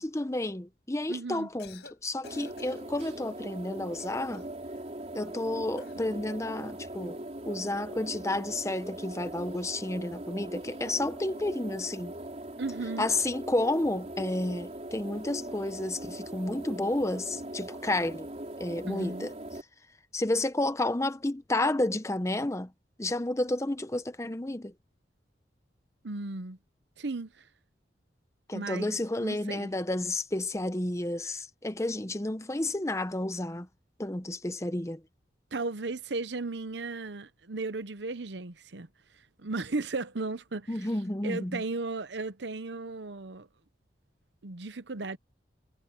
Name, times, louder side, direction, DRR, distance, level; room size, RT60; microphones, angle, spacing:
voice 1, 0.0-4.5 5.1-7.2 7.4-12.1 13.0-18.3 18.6-19.3 20.1-22.7 23.0-24.7 28.5-33.7 34.0-35.0 40.7-41.6, left 2 dB, 15° left, 0.8 m, -31 dB
voice 2, 1.1-1.5 12.6-13.1 18.9-19.3 26.0-26.6 27.0-27.4 28.5-28.9 29.2-29.7 35.5-38.9 39.4-40.9 41.2-43.5 44.4-45.2, right 3 dB, 75° right, 0.9 m, -35 dB
Cough, 1.4-2.0 2.2-3.2 3.9-4.6 5.8-6.1, left 5 dB, 70° left, 5.1 m, -52 dB
sound 1, 2.2-19.6, right 1 dB, 35° right, 3.9 m, -41 dB
head